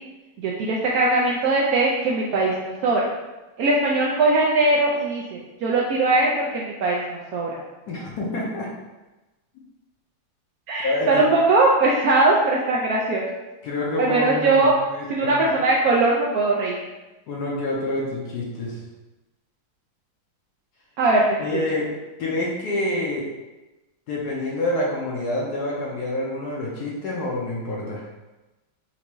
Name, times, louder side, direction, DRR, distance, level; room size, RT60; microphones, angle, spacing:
voice 1, 0.4-3.1 3.6-7.6 10.7-13.2 14.0-14.7 15.1-16.8 21.0-21.4, right 2 dB, 85° right, -3 dB, 0.8 m, -20 dB
voice 2, 7.9-8.7 10.8-11.2 13.6-15.5 17.3-18.8 21.4-21.9 22.2-23.2 24.1-28.1, left 2 dB, 65° left, -4 dB, 1.1 m, -27 dB
4.5 x 2.5 x 3.0 m, 1.1 s
omnidirectional pair, 2.1 m